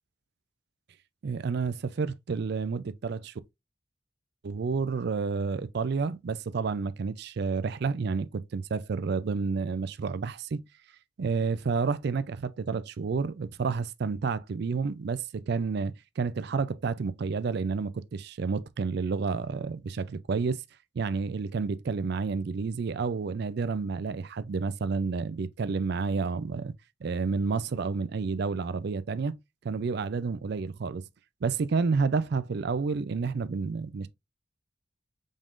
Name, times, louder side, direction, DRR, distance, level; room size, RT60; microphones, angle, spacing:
voice 1, 1.2-3.3 4.4-10.6 11.2-20.6 21.0-26.7 27.0-29.3 29.6-31.0 31.4-34.1, right 4 dB, 55° right, 0.4 m, -30 dB
5.3 x 3.6 x 2.4 m
head